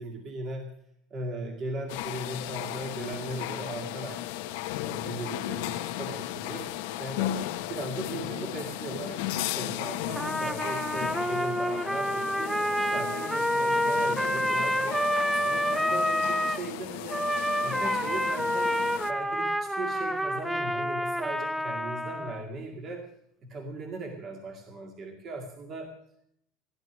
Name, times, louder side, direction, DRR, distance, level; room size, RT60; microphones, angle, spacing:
voice 1, 0.0-0.7 1.1-4.2 4.8-6.7 7.0-7.4 7.7-12.6 12.9-15.0 15.4-17.3 17.6-18.8 19.1-23.0 23.4-25.9, right 2 dB, 35° right, 3 dB, 2.1 m, -38 dB
canteen athmosphere (one visitor), 1.9-19.1, left 13 dB, 75° left, 1.0 m, -35 dB
Trumpet, 10.2-16.6 17.1-22.4, equal, 5° right, 0.5 m, -28 dB
16.0 x 11.0 x 6.2 m, 0.71 s
cardioid pair, 150°, 0 cm